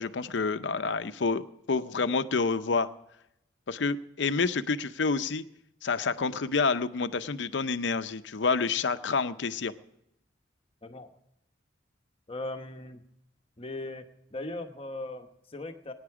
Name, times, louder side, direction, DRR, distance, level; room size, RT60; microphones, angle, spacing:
voice 1, 0.0-2.9 3.7-5.4 5.8-9.7, left 4 dB, 75° left, 11 dB, 0.7 m, -28 dB
voice 2, 12.3-13.0 13.6-14.0 14.3-15.9, left 2 dB, 30° left, 5 dB, 1.1 m, -38 dB
22.0 x 9.6 x 4.8 m, 0.81 s
head